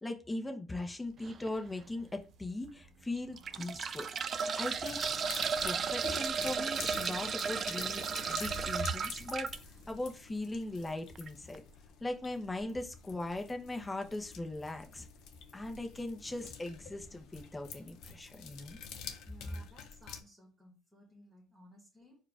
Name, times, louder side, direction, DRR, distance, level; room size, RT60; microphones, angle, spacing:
voice 1, 0.0-4.1 4.6-5.1 5.6-9.5 9.9-11.6 12.0-15.1 15.5-18.8 19.5-19.6, left 2 dB, 15° left, 0.8 m, -39 dB
sound 1, 1.0-10.0, right 2 dB, 65° right, 0.8 m, -50 dB
sound 2, 1.2-1.5 2.1-2.2 3.2-9.6 11.2-11.3 11.5-11.6, right 6 dB, 40° right, 0.3 m, -34 dB
sound 3, 4.7-20.2, left 7 dB, 70° left, 0.7 m, -48 dB
voice 2, 19.2-22.2, left 1 dB, 10° right, 1.5 m, -58 dB
4.6 x 2.4 x 4.8 m
cardioid pair, 110°, 0 cm